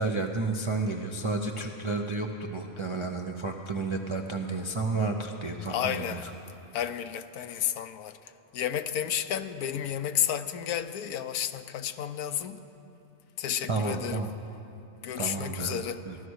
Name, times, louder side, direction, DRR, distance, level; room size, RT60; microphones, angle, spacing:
voice 1, 0.0-6.3 13.7-14.3 15.2-16.2, right 3 dB, 45° right, 0.4 m, -31 dB
voice 2, 5.7-6.2 6.7-8.2 8.5-12.6 13.4-14.2 15.0-16.0, left 10 dB, 80° left, 1.1 m, -31 dB
16.0 x 12.5 x 6.4 m
omnidirectional pair, 1.6 m